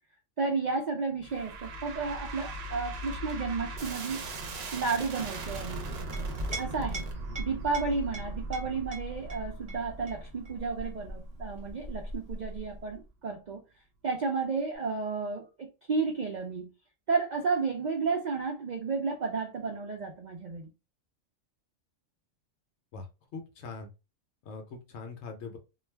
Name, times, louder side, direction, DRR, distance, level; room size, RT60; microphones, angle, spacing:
voice 1, 0.4-4.2 4.7-5.9 6.6-7.1 7.4-13.6 14.0-16.7 17.1-20.7, right 4 dB, 75° right, 0.4 m, -32 dB
sound 1, 1.2-12.5, right 2 dB, 60° right, 0.8 m, -40 dB
Chink clink, 5.9-13.0, right 1 dB, 30° right, 0.9 m, -41 dB
voice 2, 23.3-23.9 24.4-25.6, left 4 dB, 65° left, 0.9 m, -42 dB
2.3 x 2.2 x 3.2 m
omnidirectional pair, 1.4 m